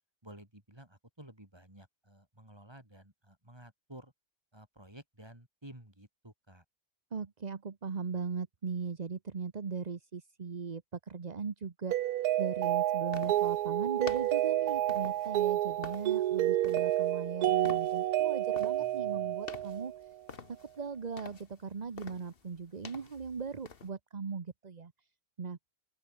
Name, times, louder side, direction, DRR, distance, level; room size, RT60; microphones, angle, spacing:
voice 1, 0.2-4.1 4.5-6.6 18.8-19.3, right 1 dB, 15° right, 4.5 m, -53 dB
voice 2, 7.1-11.9 12.4-19.9 20.8-24.9 25.4-25.6, right 5 dB, 35° right, 1.0 m, -39 dB
Mallet percussion, 11.9-20.1, right 14 dB, 85° right, 1.2 m, -30 dB
sound 1, 13.1-23.9, left 5 dB, 40° left, 1.5 m, -50 dB
open air
omnidirectional pair, 1.6 m